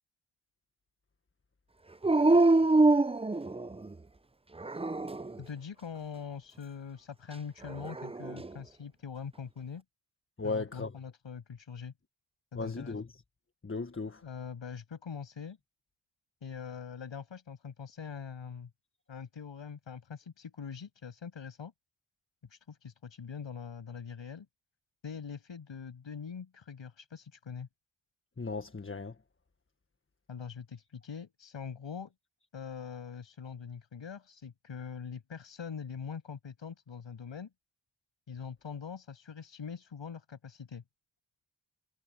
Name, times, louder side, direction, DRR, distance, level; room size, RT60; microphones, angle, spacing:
Dog, 2.0-3.9 4.6-5.4 7.6-8.5, right 2 dB, 15° right, 0.6 m, -25 dB
voice 1, 5.4-9.8 10.4-11.9 12.5-13.0 14.2-15.6 16.4-18.7 19.1-21.7 22.5-24.5 25.0-27.7 30.3-32.1 32.5-37.5 38.3-40.8, left 6 dB, 80° left, 7.2 m, -43 dB
voice 2, 10.4-10.9 12.5-13.2 13.6-14.2 28.4-29.1, left 3 dB, 30° left, 1.6 m, -36 dB
cardioid pair, 60°, 44 cm